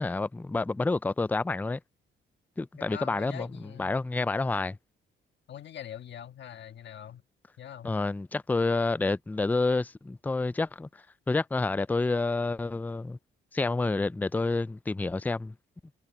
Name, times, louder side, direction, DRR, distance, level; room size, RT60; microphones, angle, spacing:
voice 1, 0.0-1.8 2.6-3.5 3.8-4.8 7.8-10.9 11.3-13.2 13.5-15.5, left 3 dB, 10° left, 0.4 m, -28 dB
voice 2, 2.8-4.0 5.5-7.2 7.6-7.9, left 10 dB, 60° left, 1.8 m, -43 dB
cardioid pair, 90°, 20 cm